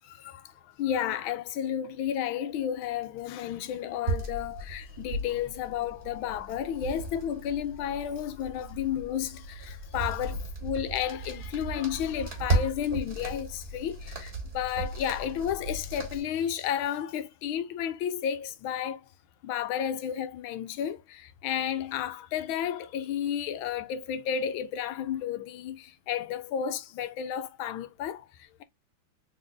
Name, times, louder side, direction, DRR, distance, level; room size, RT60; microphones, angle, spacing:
voice 1, 0.1-0.4 0.8-19.0 19.4-28.2, left 9 dB, 75° left, 1.3 m, -32 dB
sound 1, 4.1-16.2, right 2 dB, 30° right, 1.7 m, -35 dB
3.9 x 3.7 x 2.3 m
omnidirectional pair, 2.3 m